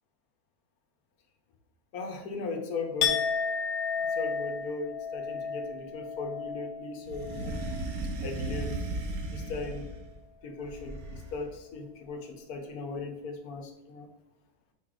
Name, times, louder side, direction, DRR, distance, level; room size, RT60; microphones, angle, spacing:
voice 1, 1.9-3.2 4.2-7.5 8.2-8.8 9.3-9.8 10.4-14.1, left 3 dB, 80° left, 3 dB, 1.3 m, -37 dB
Chink clink, 3.0-8.9 9.2-9.6, left 6 dB, 60° left, 1.1 m, -33 dB
sound 1, 7.0-10.1 10.6-11.5, right 2 dB, 75° right, 1.3 m, -36 dB
5.2 x 3.7 x 4.7 m, 0.97 s
omnidirectional pair, 1.6 m